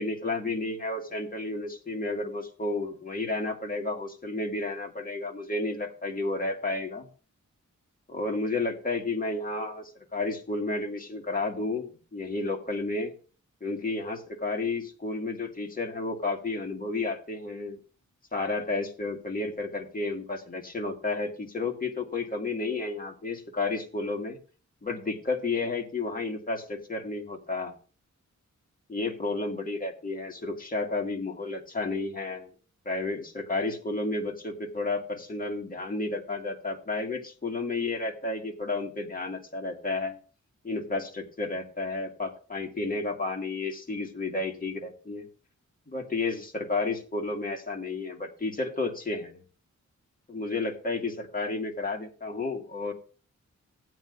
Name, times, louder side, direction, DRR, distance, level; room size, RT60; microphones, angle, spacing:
voice 1, 0.0-7.1 8.1-13.1 13.6-17.8 18.3-24.4 24.8-27.7 28.9-32.5 32.9-40.2 40.6-45.3 45.9-49.4 50.3-52.9, left 3 dB, 30° left, 1 dB, 1.8 m, -32 dB
15.0 x 9.1 x 2.5 m, 0.37 s
wide cardioid pair, 100°, 30 cm